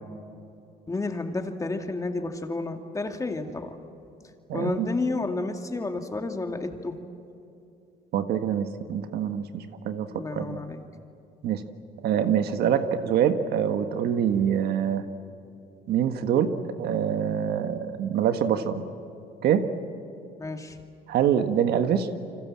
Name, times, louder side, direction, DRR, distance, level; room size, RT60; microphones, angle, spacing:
voice 1, 0.9-3.7 4.5-7.0 10.1-10.8 20.4-20.8, left 3 dB, 20° left, 5 dB, 2.2 m, -31 dB
voice 2, 4.5-4.9 8.1-10.6 11.4-11.6 12.0-15.0 15.9-18.8 19.4-19.7 21.1-22.1, right 8 dB, 70° right, 8 dB, 1.6 m, -25 dB
29.0 x 25.5 x 7.6 m, 2.7 s
cardioid pair, 110°, 17 cm